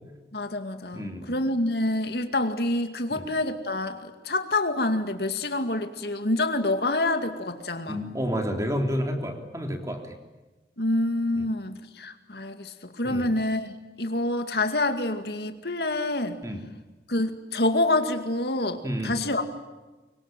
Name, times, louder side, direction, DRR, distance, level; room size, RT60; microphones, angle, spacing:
voice 1, 0.3-8.0 10.8-16.4 17.1-19.4, left 2 dB, 65° left, 7 dB, 2.3 m, -27 dB
voice 2, 0.9-1.4 3.1-3.3 7.9-10.2 11.4-11.5 13.0-13.3 16.4-16.6 18.8-19.2, equal, 20° right, 4 dB, 3.4 m, -30 dB
24.5 x 24.0 x 9.2 m, 1.2 s
head